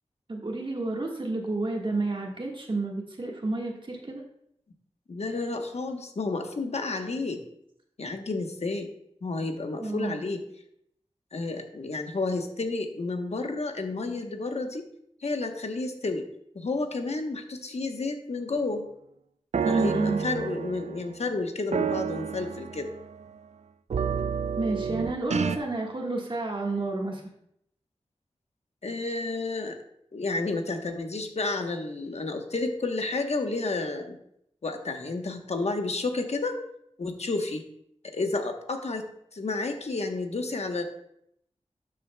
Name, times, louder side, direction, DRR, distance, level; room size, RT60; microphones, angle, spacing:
voice 1, 0.3-4.2 9.8-10.2 19.6-20.2 24.6-27.2, right 2 dB, 45° right, 0 dB, 1.5 m, -30 dB
voice 2, 5.1-7.4 8.0-8.9 9.2-10.4 11.3-14.8 15.2-16.2 16.5-18.9 19.7-22.9 28.8-29.8 30.1-34.2 34.6-36.6 37.0-37.6 38.1-39.1 39.3-40.8, left 3 dB, 70° left, 4 dB, 1.0 m, -31 dB
sound 1, 19.5-21.2 21.7-23.2 23.9-25.6, right 6 dB, 75° right, 0.4 m, -30 dB
12.5 x 7.6 x 2.2 m, 0.75 s
wide cardioid pair, 65°, 11 cm